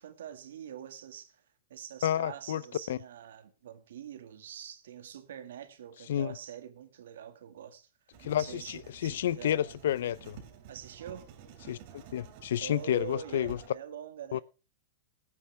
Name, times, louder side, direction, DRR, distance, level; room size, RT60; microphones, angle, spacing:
voice 1, 0.0-1.4 1.7-9.8 10.7-11.2 12.6-14.4, right 9 dB, 85° right, 1.9 m, -45 dB
voice 2, 2.0-2.6 2.9-3.0 6.1-6.3 8.2-10.4 11.7-11.8 12.1-13.6 14.3-14.4, left 11 dB, 80° left, 0.5 m, -30 dB
Writing, 8.1-13.7, right 7 dB, 50° right, 2.8 m, -51 dB
17.5 x 9.6 x 3.4 m
supercardioid pair, 150°, 0 cm